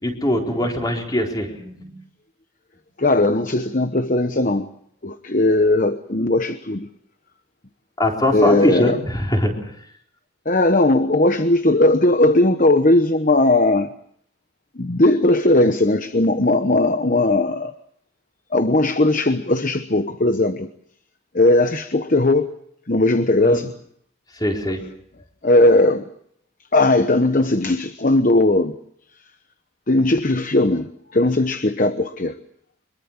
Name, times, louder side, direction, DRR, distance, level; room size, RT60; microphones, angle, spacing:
voice 1, 0.0-1.9 8.0-9.7 23.4-23.6 24.3-24.8, left 1 dB, 20° left, 4.2 m, -22 dB
voice 2, 3.0-4.7 5.0-6.9 8.3-9.0 10.4-13.9 14.8-17.7 18.5-20.7 21.3-22.5 22.9-23.7 25.4-26.0 26.7-28.7 29.9-32.3, left 2 dB, 40° left, 1.0 m, -18 dB
25.0 x 23.0 x 7.3 m
head